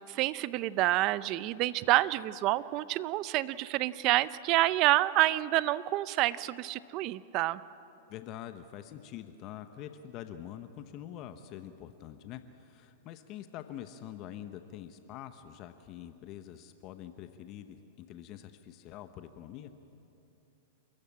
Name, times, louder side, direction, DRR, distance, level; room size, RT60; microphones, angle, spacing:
voice 1, 0.1-7.6, right 16 dB, 40° right, 17 dB, 0.6 m, -28 dB
voice 2, 8.1-19.7, left 11 dB, 40° left, 9 dB, 1.0 m, -45 dB
29.0 x 14.5 x 8.6 m, 2.8 s
hypercardioid pair, 130°, 0 cm